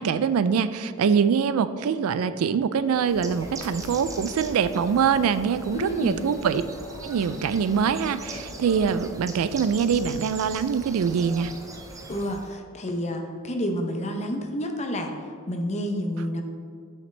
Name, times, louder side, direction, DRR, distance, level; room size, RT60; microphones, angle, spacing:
voice 1, 0.0-6.6 7.0-11.5, right 6 dB, 80° right, 13 dB, 0.3 m, -24 dB
Bird, 2.9-12.6, right 2 dB, 15° right, 0.5 m, -41 dB
sound 1, 3.2-9.1, left 1 dB, 15° left, 1.3 m, -43 dB
voice 2, 5.7-6.2 12.1-15.2 15.5-16.4, equal, 30° left, 4 dB, 0.7 m, -29 dB
8.0 x 5.7 x 3.3 m, 2.1 s
head